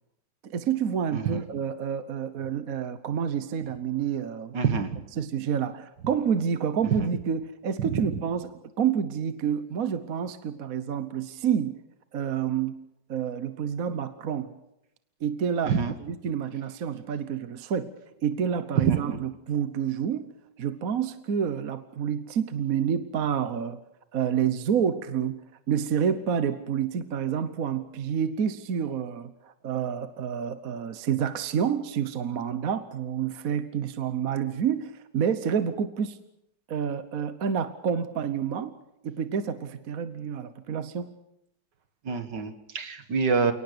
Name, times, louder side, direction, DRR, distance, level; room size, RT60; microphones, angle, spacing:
voice 1, 0.4-4.6 5.2-11.8 12.1-12.8 13.1-14.5 15.2-15.8 16.1-17.9 18.2-20.3 20.6-23.8 24.1-25.4 25.7-36.2 36.7-38.8 39.0-41.1, right 8 dB, 55° right, 12 dB, 1.3 m, -28 dB
voice 2, 1.1-1.4 4.5-5.0 7.0-7.1 7.8-8.0 15.7-15.9 18.8-19.0 42.1-43.5, right 6 dB, 70° right, 9 dB, 2.3 m, -26 dB
29.0 x 18.5 x 6.8 m, 0.81 s
omnidirectional pair, 2.0 m